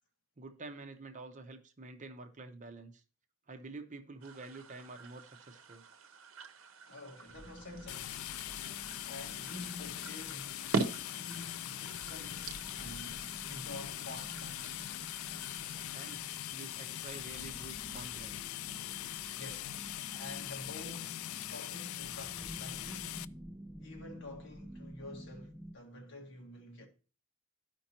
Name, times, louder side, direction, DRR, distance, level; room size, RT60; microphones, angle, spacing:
voice 1, 0.4-3.0 3.5-5.8 15.9-18.6, right 3 dB, 35° right, 0.8 m, -48 dB
sound 1, 4.2-16.2, right 3 dB, 70° right, 0.8 m, -43 dB
voice 2, 6.9-8.4 9.1-10.7 11.0-14.9 19.3-19.8 20.2-23.3 23.8-26.9, left 2 dB, 65° left, 1.7 m, -48 dB
sound 2, 7.3-25.8, equal, ahead, 0.5 m, -51 dB
sound 3, 7.9-23.3, left 14 dB, 85° left, 0.3 m, -42 dB
13.0 x 5.2 x 2.9 m
head